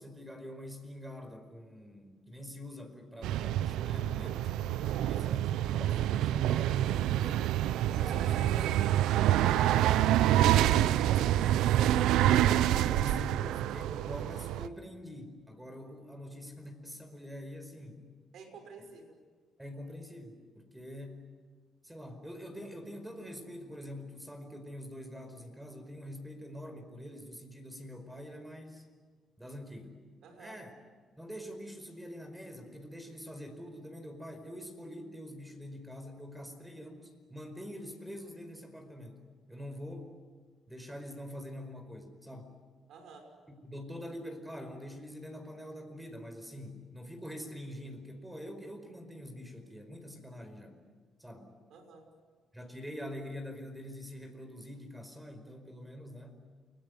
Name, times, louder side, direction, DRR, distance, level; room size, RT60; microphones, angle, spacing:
voice 1, 0.0-7.6 7.9-8.8 10.4-11.3 12.4-18.0 19.6-21.2 21.8-28.9 29.4-29.9 30.4-30.7 31.2-39.2 39.5-40.1 40.7-42.5 43.5-50.8 51.2-51.5 52.5-56.4, equal, 10° right, 7 dB, 5.0 m, -45 dB
sound 1, 3.2-14.7, right 12 dB, 90° right, 0.7 m, -27 dB
voice 2, 4.9-5.4 8.0-11.8 18.3-19.2 30.2-30.6 42.9-43.3 51.7-52.1, right 4 dB, 75° right, 5 dB, 5.8 m, -50 dB
29.0 x 20.5 x 8.3 m, 1.6 s
cardioid pair, 90°, 0 cm